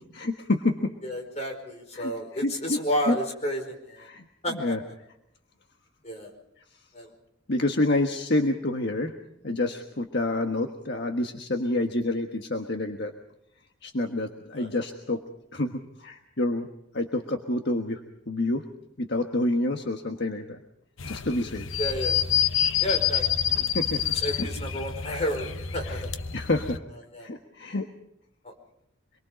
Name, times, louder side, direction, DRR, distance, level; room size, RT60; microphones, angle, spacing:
voice 1, 0.1-0.9 1.9-2.8 3.1-3.2 4.0-4.8 7.5-9.1 9.4-13.1 13.8-15.2 15.5-16.7 16.9-18.7 19.0-20.6 21.0-21.7 23.7-24.0 24.3-24.4 25.8-26.0 26.3-26.8 27.2-27.9, left 2 dB, 55° left, 4 dB, 1.4 m, -28 dB
voice 2, 1.0-4.1 4.4-4.7 6.0-6.3 6.9-7.1 14.5-14.7 21.8-22.2 22.8-23.2 23.6-23.7 24.1-26.1 27.1-27.3 28.4-28.5, equal, 35° left, 4 dB, 4.9 m, -31 dB
sound 1, 21.0-26.8, left 9 dB, 80° left, 1.1 m, -28 dB
25.5 x 23.0 x 5.2 m, 0.80 s
head